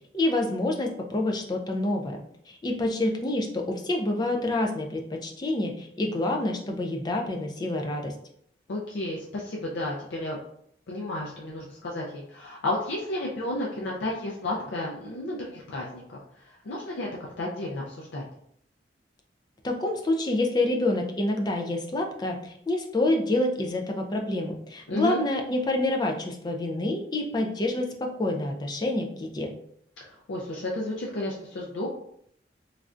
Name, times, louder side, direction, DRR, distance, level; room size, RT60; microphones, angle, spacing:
voice 1, 0.1-2.2 2.6-8.1 19.6-29.5, left 2 dB, 25° left, 2 dB, 0.4 m, -27 dB
voice 2, 8.7-10.4 10.9-17.1 17.4-18.3 24.9-25.2 30.0-31.9, left 1 dB, 85° left, -3 dB, 0.5 m, -32 dB
3.2 x 2.5 x 2.4 m, 0.70 s
head